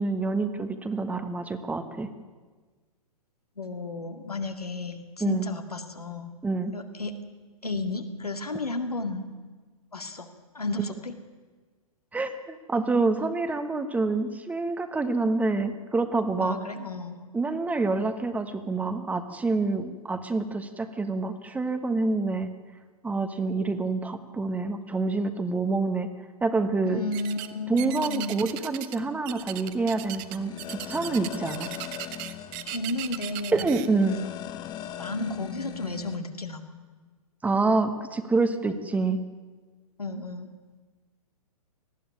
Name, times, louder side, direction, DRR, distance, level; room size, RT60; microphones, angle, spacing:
voice 1, 0.0-2.1 5.2-5.5 6.4-6.7 12.1-16.6 17.3-22.5 23.0-26.1 26.4-27.0 27.7-31.7 33.5-34.2 37.4-39.2, right 3 dB, 10° right, 9 dB, 1.2 m, -27 dB
voice 2, 3.6-6.4 6.7-7.2 7.6-9.2 9.9-10.3 10.5-11.1 16.4-17.2 26.8-28.4 32.7-33.7 35.0-36.6 40.0-40.5, left 2 dB, 85° left, 5 dB, 2.3 m, -33 dB
sound 1, 27.1-27.5 27.8-29.0 29.3-33.9, right 15 dB, 35° right, 1.1 m, -37 dB
sound 2, 29.3-36.2, left 11 dB, 20° left, 1.0 m, -40 dB
19.0 x 14.5 x 9.7 m, 1.4 s
figure-of-eight pair, 115°, 19 cm